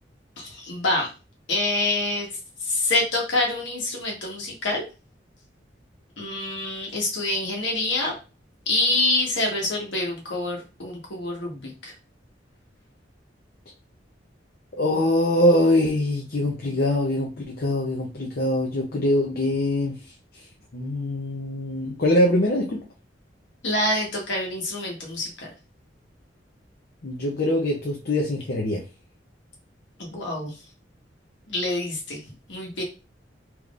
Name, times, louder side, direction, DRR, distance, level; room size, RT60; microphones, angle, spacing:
voice 1, 0.4-1.1 1.5-2.3 2.6-4.8 6.2-8.2 8.7-11.9 23.6-25.5 30.0-30.5 31.5-32.2 32.5-32.8, left 2 dB, 85° left, -1 dB, 1.4 m, -26 dB
voice 2, 14.8-20.0 20.7-22.8 27.0-28.8, left 1 dB, 55° left, -1 dB, 0.7 m, -23 dB
3.6 x 2.9 x 2.5 m, 0.31 s
head